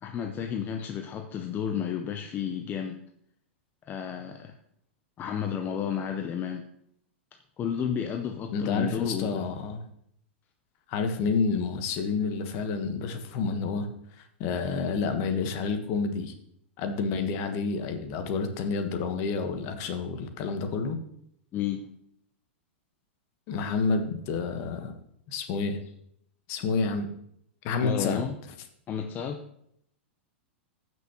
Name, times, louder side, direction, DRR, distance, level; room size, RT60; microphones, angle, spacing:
voice 1, 0.0-3.0 3.8-4.5 5.2-6.6 7.6-9.5 21.5-21.9 27.8-28.4 28.9-29.4, left 8 dB, 30° left, 5 dB, 0.7 m, -32 dB
voice 2, 8.5-9.8 10.9-13.9 14.2-16.3 16.8-21.0 23.5-24.9 25.3-25.8 26.5-27.1 27.6-28.2, left 4 dB, 45° left, 6 dB, 1.3 m, -29 dB
14.5 x 6.2 x 3.0 m, 0.72 s
hypercardioid pair, 105°, 7 cm